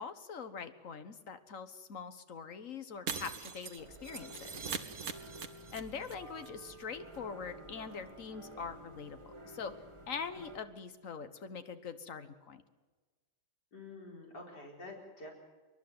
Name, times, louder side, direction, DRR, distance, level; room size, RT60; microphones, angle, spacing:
voice 1, 0.0-4.5 5.7-9.7 10.1-12.6, left 6 dB, 55° left, 10 dB, 1.6 m, -43 dB
Shatter, 3.1-6.1 6.4-6.5 6.8-6.9, right 5 dB, 65° right, 1.8 m, -41 dB
sound 1, 3.8-10.6, right 1 dB, 20° right, 1.8 m, -52 dB
voice 2, 13.7-15.3, left 2 dB, 85° left, -1 dB, 5.1 m, -48 dB
28.0 x 11.5 x 9.6 m, 1.3 s
omnidirectional pair, 1.7 m